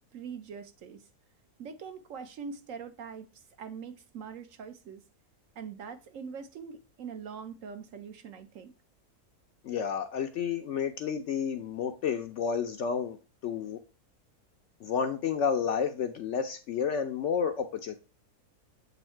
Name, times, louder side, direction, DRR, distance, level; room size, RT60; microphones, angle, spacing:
voice 1, 0.1-1.0 1.6-3.3 3.6-5.0 5.6-8.7, right 6 dB, 65° right, 1.0 m, -43 dB
voice 2, 9.6-13.2 13.4-13.8 14.8-17.9, left 7 dB, 70° left, 0.7 m, -30 dB
7.9 x 2.7 x 4.4 m
omnidirectional pair, 1.6 m